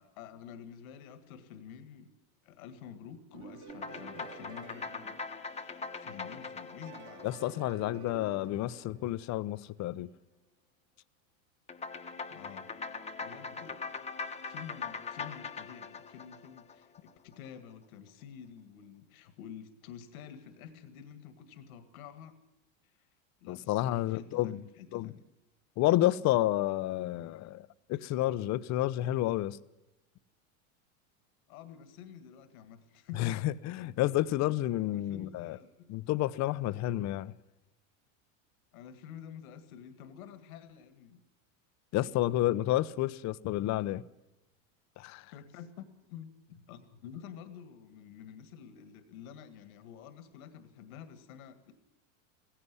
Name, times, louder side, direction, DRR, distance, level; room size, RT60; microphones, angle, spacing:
voice 1, 0.0-2.1 2.4-5.2 5.5-7.3 12.3-12.7 13.2-13.9 14.4-22.3 22.8-22.9 23.4-25.2 31.5-33.5 34.9-35.9 38.7-41.2 45.2-51.7, left 8 dB, 75° left, 2.0 m, -49 dB
sound 1, 3.3-6.2 6.9-9.7, right 6 dB, 40° right, 3.1 m, -51 dB
sound 2, 3.7-8.4 11.7-17.1, left 4 dB, 15° left, 1.2 m, -42 dB
voice 2, 7.2-10.1 23.5-24.6 24.9-25.1 25.8-29.6 33.2-35.6 35.9-37.3 41.9-44.0 45.0-45.2, left 15 dB, 40° left, 0.8 m, -30 dB
17.5 x 16.0 x 9.6 m
supercardioid pair, 115°, 42 cm